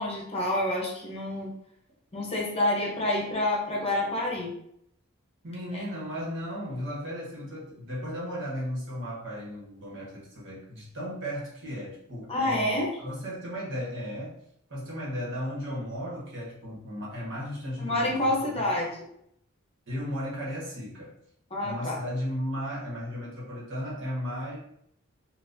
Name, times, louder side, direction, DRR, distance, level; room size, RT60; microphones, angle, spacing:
voice 1, 0.0-1.5 2.1-4.5 5.7-5.8 12.3-12.9 17.8-19.0 21.5-22.0, left 1 dB, 30° left, -3 dB, 0.8 m, -28 dB
voice 2, 5.4-14.3 14.7-18.3 19.9-21.2 21.6-24.6, equal, 60° right, -5 dB, 1.4 m, -35 dB
4.0 x 2.5 x 2.6 m, 0.73 s
head